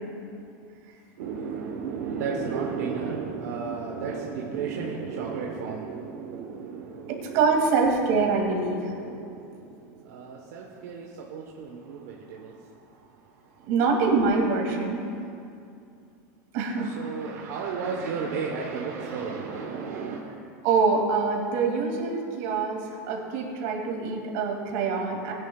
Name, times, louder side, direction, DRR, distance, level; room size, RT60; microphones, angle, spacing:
voice 1, 1.2-7.9 8.3-13.7 16.8-20.2, right 5 dB, 85° right, -2 dB, 1.2 m, -34 dB
voice 2, 7.3-8.9 13.7-15.0 16.5-16.9 20.6-25.3, right 4 dB, 60° right, 0 dB, 2.5 m, -24 dB
19.5 x 10.5 x 2.4 m, 2.5 s
supercardioid pair, 150°, 9 cm